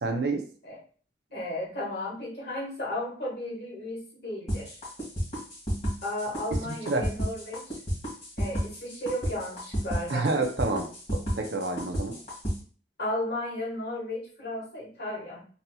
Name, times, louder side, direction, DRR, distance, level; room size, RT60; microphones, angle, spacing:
voice 1, 0.0-0.5 6.6-7.1 10.1-12.2, right 3 dB, 70° right, 5 dB, 0.6 m, -29 dB
voice 2, 1.3-4.8 6.0-7.8 8.4-10.3 13.0-15.4, left 1 dB, 55° left, -4 dB, 1.5 m, -34 dB
sound 1, 4.5-12.5, equal, 40° left, 1.8 m, -31 dB
4.1 x 2.8 x 2.3 m, 0.41 s
head